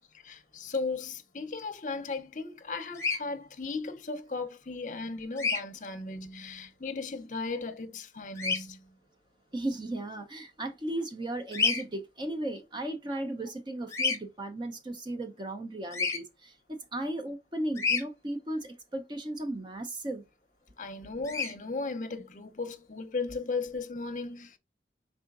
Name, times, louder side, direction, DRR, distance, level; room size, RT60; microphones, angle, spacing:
voice 1, 0.1-8.9 20.8-24.6, left 3 dB, 45° left, 0.6 m, -36 dB
Bird vocalization bird call bird song, 2.9-3.2 5.4-5.6 8.4-8.6 11.5-11.8 13.9-14.2 15.9-16.2 17.8-18.0 21.2-21.5, left 5 dB, 15° left, 0.8 m, -28 dB
voice 2, 9.5-20.2, right 1 dB, 25° right, 0.5 m, -36 dB
4.9 x 3.6 x 2.4 m
head